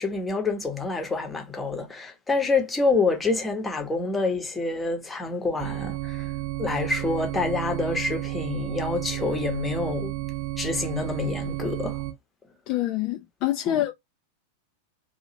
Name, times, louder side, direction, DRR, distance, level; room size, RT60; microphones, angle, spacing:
voice 1, 0.0-6.3 6.6-10.2 10.6-12.0 13.7-13.8, left 3 dB, 10° left, 0.9 m, -27 dB
sound 1, 5.6-12.1, right 16 dB, 45° right, 0.4 m, -32 dB
voice 2, 12.7-13.9, left 13 dB, 40° left, 0.4 m, -26 dB
2.6 x 2.3 x 2.9 m
figure-of-eight pair, 90°, 0 cm